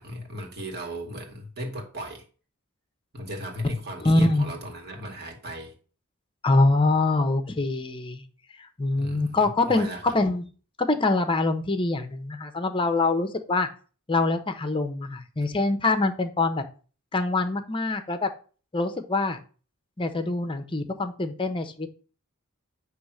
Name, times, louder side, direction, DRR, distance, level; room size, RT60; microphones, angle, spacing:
voice 1, 0.0-2.2 3.1-5.7 9.0-10.2, equal, 50° right, 2.2 m, -36 dB
voice 2, 4.0-4.5 6.4-8.2 8.8-10.4 10.8-13.7 14.1-16.6 17.1-18.3 18.7-19.4 20.0-21.9, left 2 dB, 25° left, 0.9 m, -24 dB
9.4 x 3.2 x 6.4 m
head